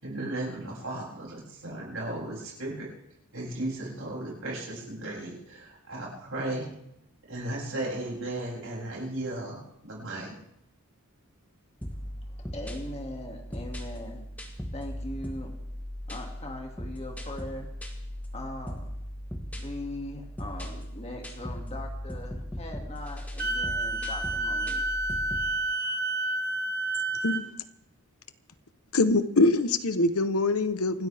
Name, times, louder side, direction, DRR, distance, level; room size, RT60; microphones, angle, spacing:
voice 1, 0.0-2.9 3.3-6.7 7.3-10.3, right 1 dB, 65° right, -3 dB, 7.2 m, -35 dB
sound 1, 11.8-25.5, equal, 5° left, 1.6 m, -38 dB
voice 2, 11.9-14.2 14.7-15.5 16.1-17.7 18.3-18.9 19.5-24.8, left 1 dB, 30° left, 2 dB, 2.4 m, -40 dB
Wind instrument woodwind instrument, 23.4-27.4, right 2 dB, 45° right, 1.1 m, -29 dB
voice 3, 28.9-31.1, left 2 dB, 80° left, 11 dB, 1.0 m, -24 dB
26.5 x 13.0 x 3.5 m, 0.81 s
head